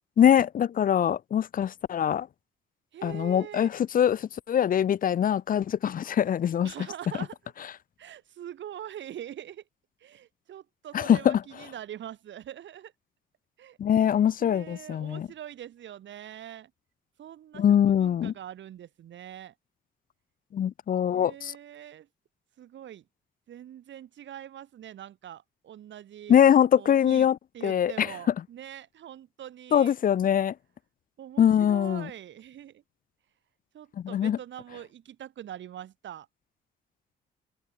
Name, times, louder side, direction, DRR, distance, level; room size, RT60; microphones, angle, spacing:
voice 1, 0.2-2.3 3.0-6.7 10.9-11.4 13.8-15.3 17.5-18.3 20.5-21.5 26.3-27.4 27.6-28.1 29.7-30.5 31.4-32.1 34.0-34.4, left 9 dB, 45° left, 0.6 m, -23 dB
voice 2, 2.9-3.7 6.6-7.5 8.0-9.6 10.0-12.9 13.6-13.8 14.4-16.7 17.2-19.5 21.1-22.1 22.6-23.0 23.5-26.4 26.7-27.3 27.5-29.9 31.2-32.8 33.7-36.3, right 11 dB, 70° right, 2.7 m, -43 dB
open air
cardioid pair, 90°, 20 cm